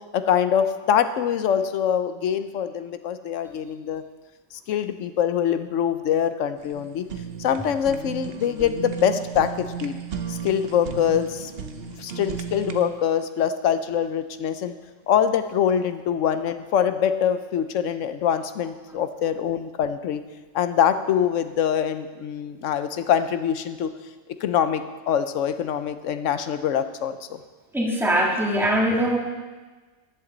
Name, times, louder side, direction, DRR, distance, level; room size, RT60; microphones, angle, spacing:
voice 1, 0.1-4.0 4.7-7.0 7.4-10.0 10.3-11.5 12.0-14.7 15.1-20.2 20.5-23.9 24.4-27.4, left 8 dB, 85° left, 10 dB, 1.0 m, -24 dB
Fire, 6.6-12.9, right 6 dB, 55° right, 1.0 m, -35 dB
voice 2, 27.7-29.2, right 1 dB, ahead, -2 dB, 1.7 m, -21 dB
14.0 x 11.0 x 4.0 m, 1.3 s
omnidirectional pair, 1.3 m